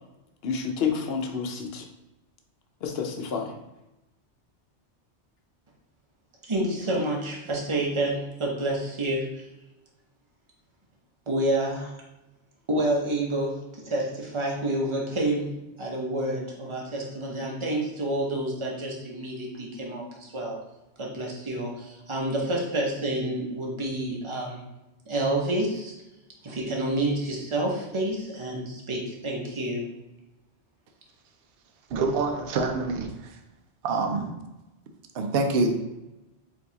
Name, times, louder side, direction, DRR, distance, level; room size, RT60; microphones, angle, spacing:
voice 1, 0.4-1.8 2.8-3.5, left 6 dB, 65° left, 3 dB, 0.8 m, -29 dB
voice 2, 6.5-9.4 11.3-11.9 12.7-20.6 21.0-24.6 25.1-25.9 26.4-29.9, right 1 dB, 30° right, -2 dB, 0.8 m, -29 dB
voice 3, 31.9-33.1 33.8-34.3 35.1-35.7, right 3 dB, 65° right, 5 dB, 0.8 m, -25 dB
4.5 x 2.8 x 4.0 m, 0.97 s
omnidirectional pair, 1.2 m